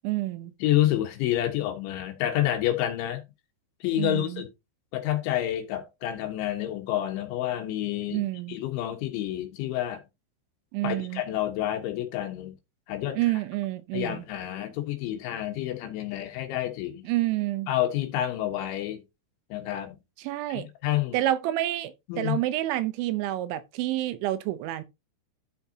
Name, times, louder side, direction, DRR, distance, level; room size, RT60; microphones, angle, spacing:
voice 1, 0.0-0.5 4.0-4.4 8.1-8.6 10.7-11.2 13.1-14.3 17.0-17.7 20.2-20.7 21.1-24.8, right 15 dB, 80° right, 2.9 m, -28 dB
voice 2, 0.6-3.2 3.8-4.5 4.9-8.2 8.5-10.0 10.8-12.6 12.9-13.2 13.9-17.0 17.7-19.0 19.5-20.0 20.6-21.2 22.1-22.4, left 13 dB, 75° left, 3.6 m, -28 dB
13.0 x 5.8 x 2.8 m
omnidirectional pair, 5.6 m